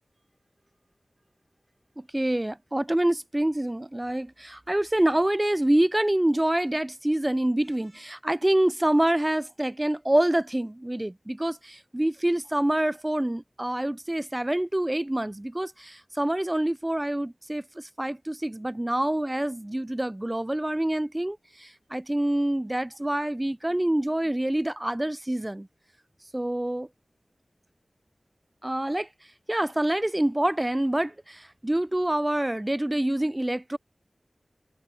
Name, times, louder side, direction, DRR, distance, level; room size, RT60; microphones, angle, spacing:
voice 1, 2.0-25.7 26.3-26.9 28.6-29.1 29.5-33.8, right 1 dB, 20° right, 0.3 m, -26 dB
wide cardioid pair, 60°, 0 cm